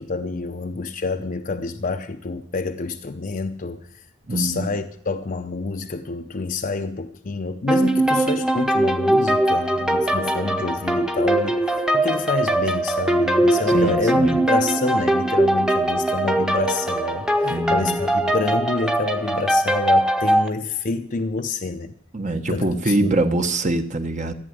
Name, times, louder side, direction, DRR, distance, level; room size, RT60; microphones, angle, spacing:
voice 1, 0.0-21.9 22.5-23.2, left 3 dB, 40° left, 0.7 m, -28 dB
voice 2, 4.3-4.7 13.7-14.4 17.4-18.0 22.1-24.3, right 2 dB, 35° right, 1.2 m, -23 dB
sound 1, 7.7-20.5, right 1 dB, 5° right, 1.0 m, -21 dB
14.5 x 8.9 x 9.2 m
head